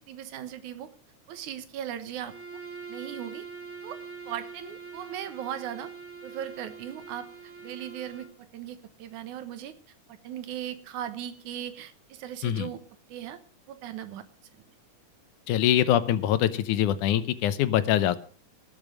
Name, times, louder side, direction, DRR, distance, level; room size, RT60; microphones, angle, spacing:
voice 1, 0.1-0.9 1.3-2.3 2.9-3.5 3.8-4.0 4.3-5.9 6.2-9.7 10.2-12.8 13.1-13.4 13.7-14.3, right 10 dB, 75° right, 12 dB, 2.5 m, -38 dB
Bowed string instrument, 2.2-8.4, right 5 dB, 25° right, 2.4 m, -43 dB
voice 2, 15.5-18.2, left 11 dB, 85° left, 13 dB, 2.4 m, -24 dB
18.5 x 7.2 x 6.3 m, 0.42 s
omnidirectional pair, 3.5 m